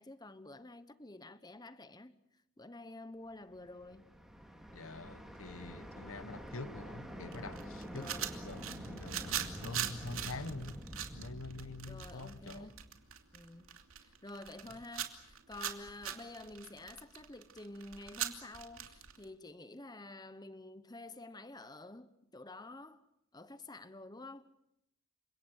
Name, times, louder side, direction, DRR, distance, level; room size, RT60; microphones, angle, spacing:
voice 1, 0.0-2.2 2.6-4.1 7.2-7.6 7.9-8.3 11.9-12.9 13.3-23.0 23.3-24.5, left 2 dB, 20° left, 1.1 m, -50 dB
sound 1, 3.5-13.5, equal, ahead, 3.5 m, -48 dB
voice 2, 4.7-8.1 8.4-10.8 11.1-12.7, left 3 dB, 70° left, 1.2 m, -46 dB
sound 2, 7.3-19.2, right 10 dB, 70° right, 2.8 m, -41 dB
30.0 x 26.0 x 6.5 m
head